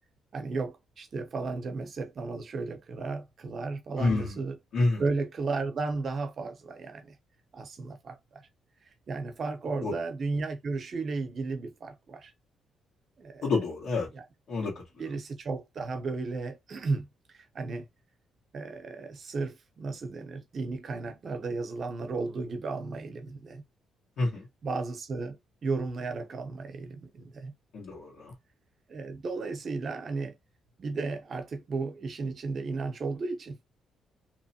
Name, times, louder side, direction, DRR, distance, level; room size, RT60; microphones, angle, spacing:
voice 1, 0.3-4.5 5.0-7.2 7.5-8.5 9.1-12.3 13.2-13.4 14.1-14.2 15.0-17.9 18.5-23.6 24.6-27.5 28.9-30.4 30.8-33.6, right 3 dB, 50° right, 0.7 m, -34 dB
voice 2, 4.0-4.4 4.7-5.0 9.8-9.9 13.4-14.1 14.5-14.8 24.2-24.5 27.7-28.3, left 3 dB, 70° left, 1.5 m, -28 dB
2.9 x 2.1 x 2.8 m
cardioid pair, 90°, 0 cm